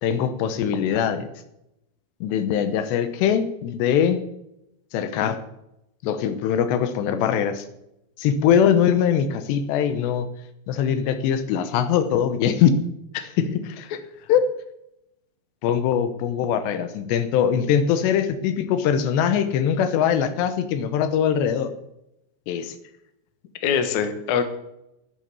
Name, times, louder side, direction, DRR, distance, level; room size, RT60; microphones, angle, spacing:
voice 1, 0.0-1.3 2.2-4.2 4.9-5.4 6.0-7.6 8.2-10.3 10.7-12.8 14.3-14.5 15.6-21.7 22.5-22.8, left 8 dB, 80° left, 10 dB, 3.1 m, -22 dB
voice 2, 13.2-13.9 23.6-24.4, left 7 dB, 60° left, 8 dB, 2.2 m, -24 dB
11.0 x 10.5 x 6.9 m, 0.85 s
omnidirectional pair, 5.0 m